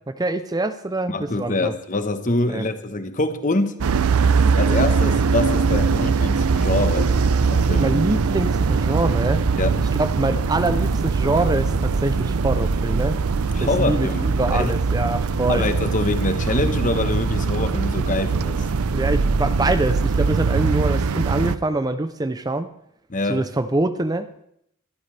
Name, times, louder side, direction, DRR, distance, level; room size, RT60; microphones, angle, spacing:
voice 1, 0.1-1.7 2.5-2.7 7.8-9.4 9.9-13.2 13.6-15.7 18.9-22.7 23.3-24.3, right 2 dB, 15° right, 0.5 m, -24 dB
voice 2, 1.1-3.8 4.6-7.1 7.5-8.0 9.6-9.7 13.5-14.7 15.5-18.7 23.1-23.4, left 2 dB, 35° left, 1.1 m, -25 dB
sound 1, 3.8-21.6, right 4 dB, 80° right, 0.6 m, -21 dB
23.5 x 13.5 x 3.3 m
head